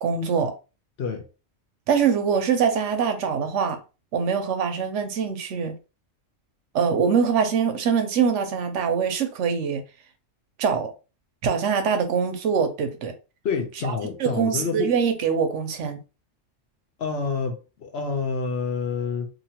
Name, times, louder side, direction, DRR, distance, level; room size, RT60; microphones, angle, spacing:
voice 1, 0.0-0.5 1.9-3.8 4.1-5.7 6.7-9.8 10.6-10.9 11.4-13.1 13.8-13.9 14.2-16.0, right 6 dB, 70° right, 0.9 m, -23 dB
voice 2, 13.4-14.9 17.0-19.3, left 5 dB, 60° left, 0.8 m, -28 dB
3.0 x 2.5 x 2.8 m
omnidirectional pair, 1.3 m